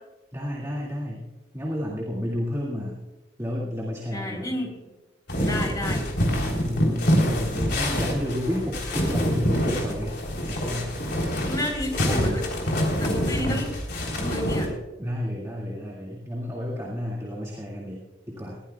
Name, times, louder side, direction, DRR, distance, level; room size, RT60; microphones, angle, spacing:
voice 1, 0.3-1.3 1.5-3.0 3.4-4.6 6.5-10.2 10.5-11.0 15.0-18.6, left 1 dB, 15° right, -4 dB, 2.1 m, -31 dB
voice 2, 4.1-4.7 5.4-6.0 11.4-12.4 12.9-13.7 14.2-14.7, left 1 dB, 20° left, 2 dB, 3.8 m, -30 dB
sound 1, 5.3-14.7, equal, 55° left, 3.5 m, -26 dB
20.5 x 16.5 x 2.3 m, 1.1 s
head